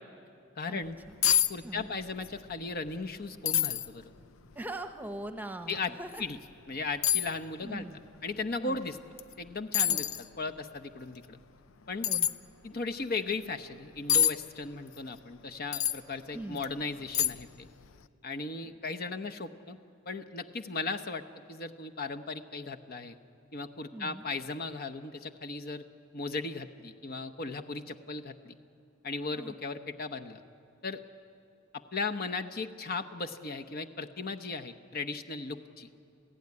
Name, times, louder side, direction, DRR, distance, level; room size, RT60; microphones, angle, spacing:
voice 1, 0.6-1.0 1.5-4.0 5.7-5.9 6.2-6.4 6.7-7.8 8.2-9.0 9.4-10.1 10.4-11.4 11.9-12.1 12.6-17.7 18.2-19.8 20.1-21.2 21.5-23.2 23.5-25.8 26.1-28.5 29.0-30.4 30.8-31.0 31.9-35.9, left 3 dB, 50° left, 6 dB, 0.9 m, -37 dB
sound 1, 0.9-1.0 1.2-1.5 1.8-2.4 2.7-2.8 3.5-3.9 4.5-4.6 6.1-6.3 7.0-7.3 9.2-9.3 9.7-10.2 12.0-12.3 14.1-14.3 15.7-16.0 16.6-16.7 17.1-17.6 17.8-18.0, left 10 dB, 75° left, 0.6 m, -26 dB
voice 2, 1.6-1.9 4.5-6.2 7.6-8.0 8.6-8.8 9.9-10.0 12.0-12.3 16.3-16.6 23.9-24.2 29.3-29.5, right 1 dB, 10° right, 8 dB, 0.9 m, -41 dB
27.0 x 16.0 x 9.6 m, 2.4 s
head